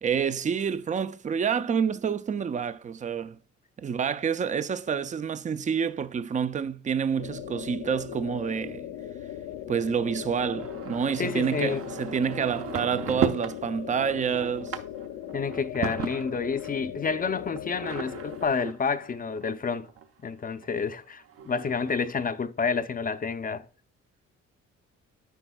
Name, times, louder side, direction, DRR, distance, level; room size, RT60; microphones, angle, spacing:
voice 1, 0.0-3.4 3.8-8.8 9.7-14.8, right 7 dB, 25° right, 0.4 m, -28 dB
sound 1, 7.2-18.5, left 10 dB, 80° left, 0.7 m, -39 dB
sound 2, 10.6-13.6 14.0-16.7 17.5-20.1 20.6-20.7 21.0-21.1 21.2-22.1, right 7 dB, 50° right, 0.8 m, -35 dB
voice 2, 11.2-11.8 15.3-19.9 20.2-23.7, left 5 dB, 30° left, 0.6 m, -29 dB
10.0 x 4.4 x 2.3 m
cardioid pair, 90°, 30 cm